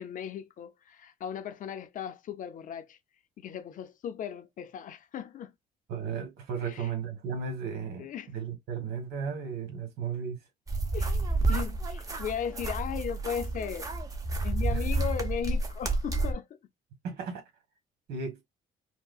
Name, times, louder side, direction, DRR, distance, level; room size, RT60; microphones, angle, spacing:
voice 1, 0.0-3.0 3.4-5.5 6.6-6.9 8.0-8.3 10.9-11.2 11.5-13.9 14.4-16.5, left 8 dB, 50° left, 0.6 m, -36 dB
voice 2, 5.9-10.4 14.7-14.8 17.0-17.4 18.1-18.4, right 6 dB, 70° right, 1.3 m, -35 dB
sound 1, 10.7-16.3, right 2 dB, 20° right, 0.8 m, -30 dB
4.6 x 2.1 x 2.4 m
cardioid pair, 110°, 17 cm